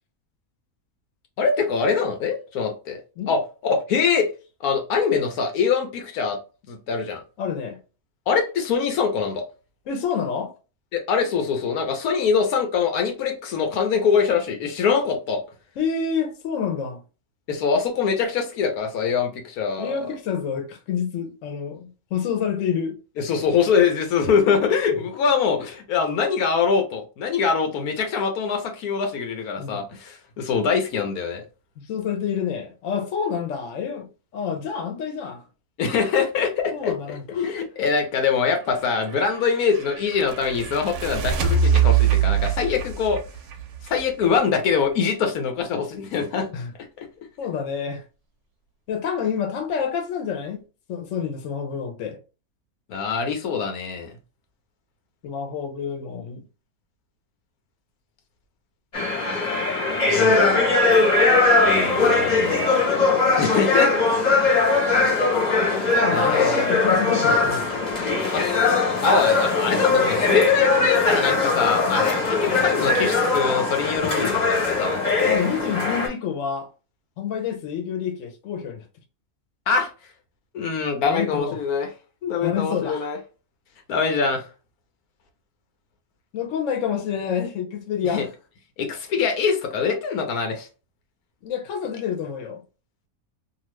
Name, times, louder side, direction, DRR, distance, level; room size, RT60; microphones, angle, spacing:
voice 1, 1.4-3.0 3.3-4.3 4.6-6.4 6.7-7.2 8.3-9.4 10.9-15.4 17.5-20.0 23.2-31.4 35.8-36.9 37.3-43.2 43.8-46.5 52.9-54.1 60.1-60.7 61.6-62.6 63.4-64.0 66.1-66.7 68.3-68.5 69.0-75.0 79.7-79.9 80.5-81.9 82.2-83.2 83.9-84.4 88.1-88.2 88.8-90.7, left 6 dB, 90° left, 1.2 m, -23 dB
voice 2, 7.4-7.8 9.9-10.5 15.8-17.0 19.8-23.0 29.6-29.8 31.9-35.4 36.7-37.5 46.5-46.7 47.4-48.0 48.9-50.6 50.9-52.2 55.2-56.4 60.0-60.4 60.9-61.1 62.1-62.6 65.9-67.7 69.2-69.3 72.1-72.4 75.2-76.7 77.2-78.8 81.1-81.5 82.4-83.1 86.3-88.3 91.4-92.6, left 7 dB, 65° left, 1.0 m, -28 dB
sound 1, 38.8-44.6, right 7 dB, 70° right, 0.8 m, -24 dB
sound 2, 58.9-76.1, left 3 dB, 35° left, 0.9 m, -20 dB
2.8 x 2.4 x 3.1 m
omnidirectional pair, 1.5 m